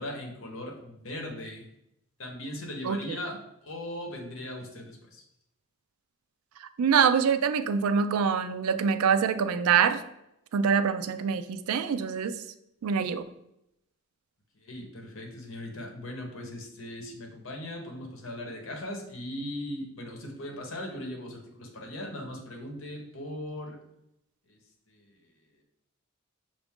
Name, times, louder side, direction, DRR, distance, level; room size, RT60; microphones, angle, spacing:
voice 1, 0.0-1.6 2.2-3.4 3.6-5.2 14.5-23.8 24.5-24.6 24.9-25.2, left 1 dB, 65° left, 2 dB, 1.0 m, -39 dB
voice 2, 2.8-3.2 6.6-10.0 10.5-12.4 12.8-13.2, right 6 dB, 85° right, 11 dB, 0.4 m, -25 dB
5.8 x 2.5 x 3.6 m, 0.83 s
head